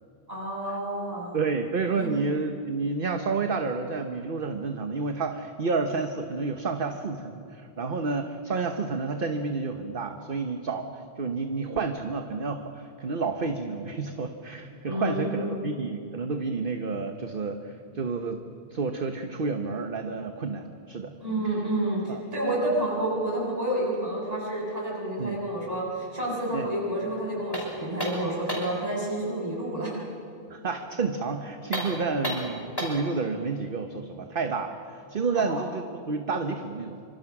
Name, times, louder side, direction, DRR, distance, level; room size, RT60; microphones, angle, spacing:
voice 1, 0.3-1.4 2.0-2.2 14.9-15.6 21.2-29.9 35.3-35.6, right 1 dB, 35° right, -4 dB, 7.1 m, -29 dB
voice 2, 1.3-10.9 11.2-18.4 18.7-21.1 22.1-22.2 25.2-25.4 26.5-26.7 30.5-37.0, right 4 dB, 50° right, 6 dB, 1.2 m, -30 dB
sound 1, 27.5-28.8 31.6-33.1, equal, 20° left, 6.1 m, -32 dB
26.5 x 25.5 x 6.0 m, 2.5 s
omnidirectional pair, 1.2 m